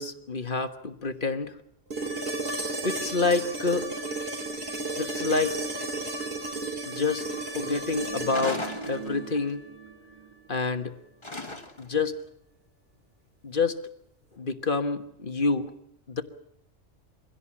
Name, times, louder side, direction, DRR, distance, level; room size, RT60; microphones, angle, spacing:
voice 1, 0.0-1.6 2.7-3.9 4.5-4.6 5.0-5.6 6.5-7.3 7.5-9.6 10.5-11.0 11.8-12.1 13.4-13.8 14.4-15.7 16.1-16.2, left 4 dB, 45° left, 8 dB, 1.5 m, -28 dB
sound 1, 1.9-10.0 12.1-12.2, right 2 dB, 50° right, 3.5 m, -34 dB
sound 2, 7.8-10.3 10.6-10.8, right 5 dB, 25° right, 2.0 m, -41 dB
sound 3, 8.3-9.5 11.2-12.0, left 2 dB, 25° left, 1.8 m, -36 dB
24.0 x 17.0 x 8.7 m, 0.75 s
omnidirectional pair, 1.3 m